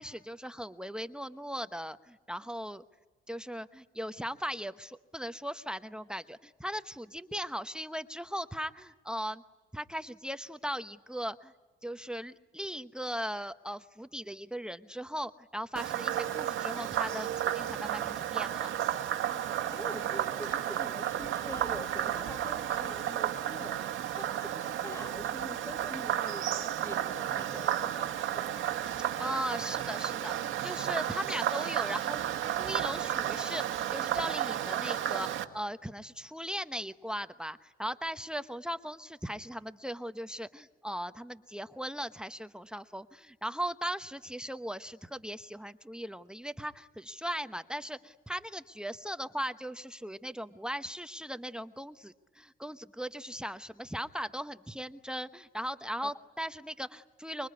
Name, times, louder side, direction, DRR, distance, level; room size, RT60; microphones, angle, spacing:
voice 1, 0.0-2.8 3.3-9.4 9.7-11.5 11.8-18.7 29.2-32.2 32.6-57.5, equal, 5° right, 1.0 m, -38 dB
Frog, 15.8-35.4, right 11 dB, 80° right, 1.9 m, -33 dB
voice 2, 19.7-28.5 56.0-56.1, left 1 dB, 15° left, 2.2 m, -45 dB
26.0 x 23.5 x 9.6 m
cardioid pair, 90°, 20 cm